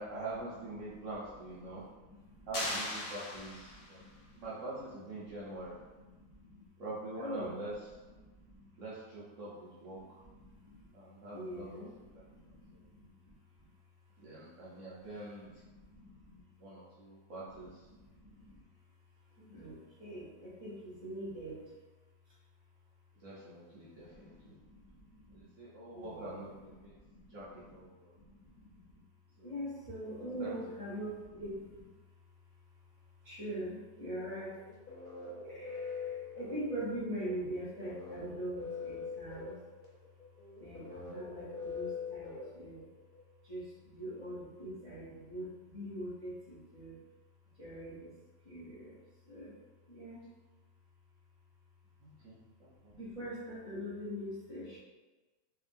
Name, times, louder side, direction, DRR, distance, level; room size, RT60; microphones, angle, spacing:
voice 1, 0.0-1.8 2.5-4.0 4.3-5.8 6.8-7.7 8.8-9.5 9.8-10.2 10.9-12.2 14.2-15.5 16.6-17.7 23.2-24.6 25.3-26.9 27.3-28.1 29.4-29.5 30.4-30.5 52.0-52.9, right 2 dB, 60° right, -7 dB, 0.8 m, -45 dB
voice 2, 1.6-2.5 3.3-4.4 5.3-6.6 7.2-7.6 8.0-8.7 10.0-10.9 11.3-13.3 15.0-16.4 17.5-17.7 18.0-18.6 19.4-21.6 24.0-25.5 25.9-27.8 28.1-29.0 29.4-31.9 33.2-34.6 35.4-39.6 40.6-42.8 43.4-47.0 47.6-48.1 48.4-49.0 49.3-49.5 49.9-50.2 52.9-54.8, equal, 40° left, -9 dB, 0.4 m, -44 dB
sound 1, 2.5-4.1, left 2 dB, 90° left, 1.4 m, -38 dB
sound 2, 34.5-43.2, left 4 dB, 65° left, 1.2 m, -43 dB
2.8 x 2.5 x 2.5 m, 1.2 s
omnidirectional pair, 1.8 m